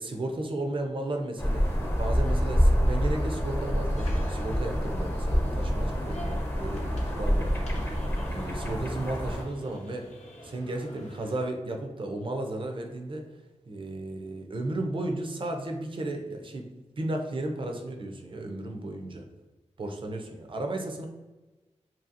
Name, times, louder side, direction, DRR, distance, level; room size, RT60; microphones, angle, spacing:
voice 1, 0.0-7.9 8.3-10.1 10.4-13.2 13.7-16.7 17.0-19.3 19.8-21.1, right 2 dB, 45° right, 3 dB, 0.4 m, -34 dB
sound 1, 1.4-9.4, equal, 20° left, 0.5 m, -27 dB
sound 2, 4.0-11.5, left 1 dB, 65° left, 0.7 m, -45 dB
2.7 x 2.7 x 2.5 m, 1.1 s
wide cardioid pair, 90°, 12 cm